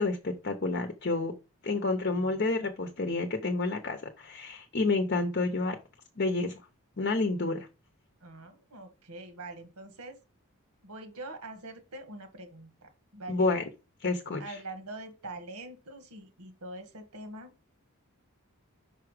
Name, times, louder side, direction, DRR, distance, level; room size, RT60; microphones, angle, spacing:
voice 1, 0.0-1.3 1.6-5.8 6.2-6.6 7.0-7.7 13.3-13.6 14.0-14.6, left 3 dB, 45° left, 0.7 m, -29 dB
voice 2, 8.2-10.2 10.8-13.5 14.4-17.5, right 2 dB, 90° right, 1.6 m, -44 dB
5.6 x 4.8 x 4.9 m
head